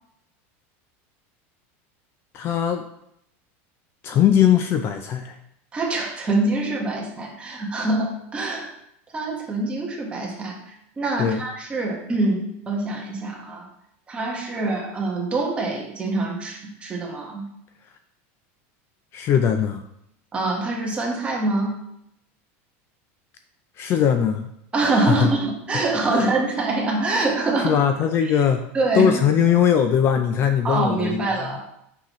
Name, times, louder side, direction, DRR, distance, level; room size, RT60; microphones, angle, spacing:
voice 1, 2.3-2.8 4.0-5.4 11.2-11.4 19.1-19.8 23.8-24.5 25.1-25.3 26.1-26.3 27.6-28.6 28.9-31.6, left 8 dB, 35° left, 7 dB, 0.4 m, -20 dB
voice 2, 5.7-8.7 9.1-13.7 14.1-17.5 20.3-21.8 24.7-27.8 28.2-28.3 28.7-29.1 30.6-31.6, right 2 dB, 15° right, -1 dB, 1.3 m, -25 dB
6.4 x 5.6 x 3.1 m, 0.77 s
supercardioid pair, 145°, 7 cm